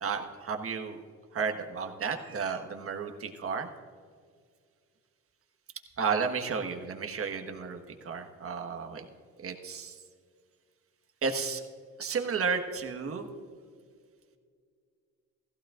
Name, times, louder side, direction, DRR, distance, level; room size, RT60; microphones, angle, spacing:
voice 1, 0.0-1.0 1.3-3.7 6.0-7.8 8.0-9.0 9.4-9.9 11.2-11.6 12.0-13.3, right 5 dB, 50° right, 4 dB, 1.5 m, -32 dB
16.5 x 15.0 x 2.5 m, 2.1 s
cardioid pair, 90°, 30 cm